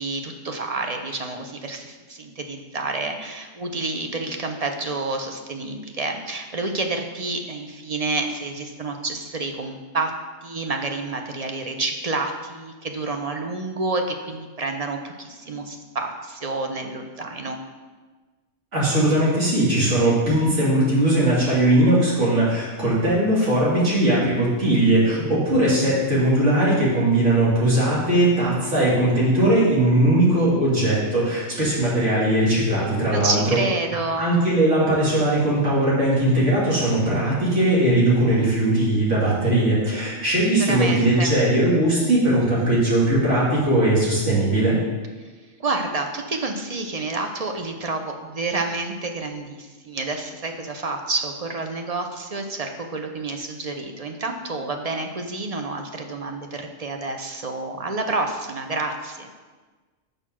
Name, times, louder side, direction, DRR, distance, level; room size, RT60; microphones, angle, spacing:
voice 1, 0.0-17.6 33.1-34.3 40.6-41.3 45.6-59.3, right 3 dB, 40° right, 4 dB, 0.6 m, -29 dB
voice 2, 18.7-33.4 34.2-44.8, right 1 dB, 70° right, -7 dB, 2.9 m, -19 dB
6.6 x 5.2 x 6.0 m, 1.3 s
omnidirectional pair, 1.3 m